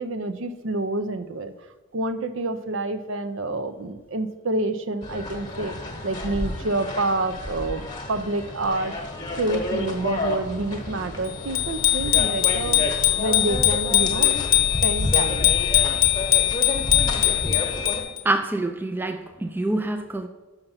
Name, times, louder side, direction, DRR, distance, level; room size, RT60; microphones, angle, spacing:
voice 1, 0.0-1.5 1.9-5.7 6.0-7.8 8.1-14.4 14.8-15.5, right 2 dB, 65° right, 10 dB, 0.6 m, -28 dB
sound 1, 5.0-18.0, left 1 dB, 20° left, 1.1 m, -30 dB
Bicycle bell, 11.5-18.2, left 14 dB, 40° left, 0.7 m, -21 dB
voice 2, 18.2-20.3, right 2 dB, 10° right, 7 dB, 0.3 m, -26 dB
6.6 x 5.8 x 5.7 m, 1.2 s
head